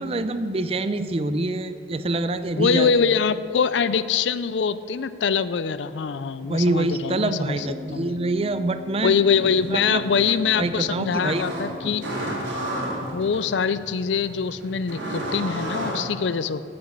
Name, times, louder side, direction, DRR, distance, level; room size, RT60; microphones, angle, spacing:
voice 1, 0.0-3.0 6.5-9.2 9.7-11.5 11.8-11.9, right 2 dB, 30° right, 11 dB, 0.5 m, -26 dB
voice 2, 2.5-7.7 7.9-8.2 9.0-12.0 13.1-16.6, left 6 dB, 75° left, 15 dB, 0.4 m, -23 dB
Organ, 7.5-14.0, left 4 dB, 50° left, 2.8 m, -42 dB
sound 1, 9.2-16.0, right 1 dB, 85° right, 2.6 m, -33 dB
10.5 x 7.8 x 8.3 m, 2.5 s
head